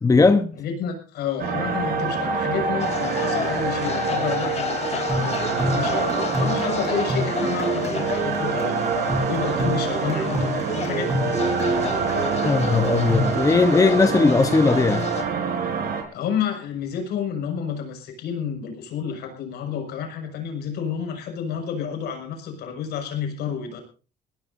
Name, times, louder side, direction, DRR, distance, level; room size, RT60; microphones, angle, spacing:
voice 1, 0.0-0.5 12.4-15.1, left 4 dB, 20° left, 1.0 m, -18 dB
voice 2, 0.6-8.8 9.3-11.2 16.1-23.8, left 7 dB, 75° left, 6.2 m, -30 dB
sound 1, 1.4-16.0, right 5 dB, 60° right, 4.5 m, -26 dB
sound 2, 2.8-15.2, left 6 dB, 40° left, 3.4 m, -31 dB
sound 3, 4.8-13.3, right 1 dB, 20° right, 4.4 m, -29 dB
22.0 x 17.5 x 2.7 m
cardioid pair, 110°, 17 cm